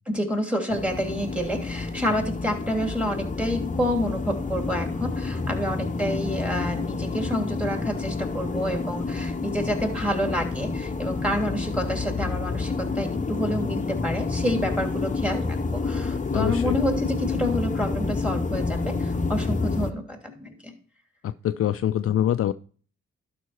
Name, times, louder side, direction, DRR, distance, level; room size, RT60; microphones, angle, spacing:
voice 1, 0.1-20.7, equal, 5° right, 3 dB, 2.9 m, -28 dB
sound 1, 0.7-19.9, left 3 dB, 25° left, 0.8 m, -29 dB
voice 2, 16.3-16.8 21.2-22.5, left 11 dB, 50° left, 12 dB, 0.4 m, -24 dB
12.0 x 5.4 x 4.3 m, 0.43 s
hypercardioid pair, 40°, 31 cm